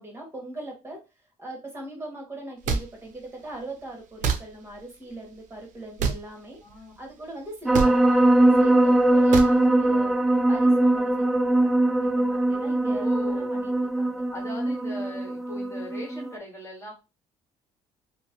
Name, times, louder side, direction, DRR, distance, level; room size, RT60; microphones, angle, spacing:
voice 1, 0.0-6.6 7.0-14.2, right 2 dB, 15° right, 1 dB, 1.4 m, -41 dB
sound 1, 2.6-2.8 4.2-4.4 6.0-6.2 7.7-7.9 9.3-9.5, right 6 dB, 65° right, 0.5 m, -25 dB
voice 2, 6.6-6.9 13.0-13.5 14.3-16.9, left 1 dB, 20° left, 0 dB, 1.6 m, -39 dB
sound 2, 7.7-16.3, right 1 dB, ahead, 0.4 m, -21 dB
2.8 x 2.1 x 2.9 m, 0.27 s
cardioid pair, 85°, 14 cm